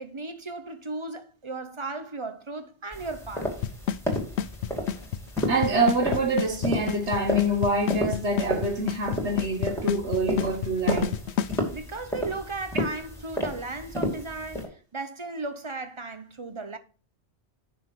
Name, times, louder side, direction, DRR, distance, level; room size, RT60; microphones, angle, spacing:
voice 1, 0.0-3.6 11.7-16.8, right 3 dB, 30° right, 0.9 m, -36 dB
sound 1, 2.9-14.7, equal, ahead, 2.5 m, -33 dB
Drum kit / Snare drum / Bass drum, 3.6-11.6, left 9 dB, 75° left, 0.9 m, -28 dB
voice 2, 5.5-11.2, right 2 dB, 80° right, 1.9 m, -26 dB
9.5 x 5.8 x 4.8 m
omnidirectional pair, 1.1 m